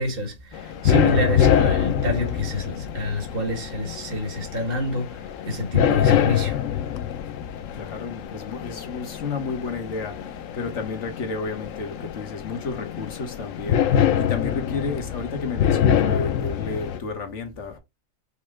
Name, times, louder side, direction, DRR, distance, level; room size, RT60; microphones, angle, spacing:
voice 1, 0.0-5.2 5.5-6.5, equal, 45° right, 1.5 m, -28 dB
sound 1, 0.5-17.0, left 9 dB, 85° left, 1.0 m, -25 dB
voice 2, 7.7-17.8, left 4 dB, 70° left, 1.4 m, -32 dB
5.4 x 2.0 x 4.7 m
omnidirectional pair, 1.3 m